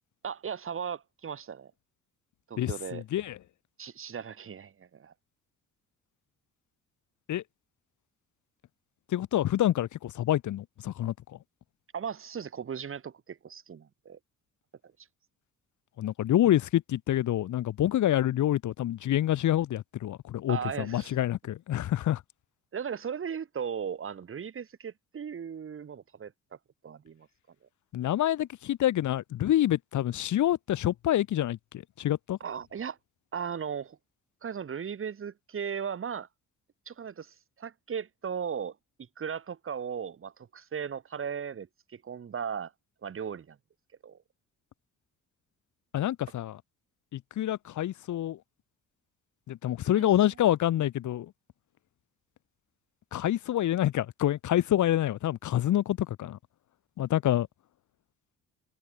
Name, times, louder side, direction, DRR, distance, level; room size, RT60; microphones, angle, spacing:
voice 1, 0.2-1.7 2.5-3.0 3.8-5.1 11.9-14.2 20.5-21.2 22.7-26.3 26.8-27.3 32.4-33.0 33.3-34.0 34.4-36.3 36.9-38.8 39.2-42.7 43.0-43.6 44.0-44.2 49.8-50.1, right 7 dB, 45° right, 2.2 m, -37 dB
voice 2, 2.6-3.4 7.3-7.4 9.1-11.1 16.0-22.2 27.9-31.6 32.0-32.4 45.9-46.6 47.1-48.4 49.5-51.3 53.1-56.4 57.0-57.5, left 12 dB, 75° left, 2.3 m, -27 dB
cardioid pair, 90°, 30 cm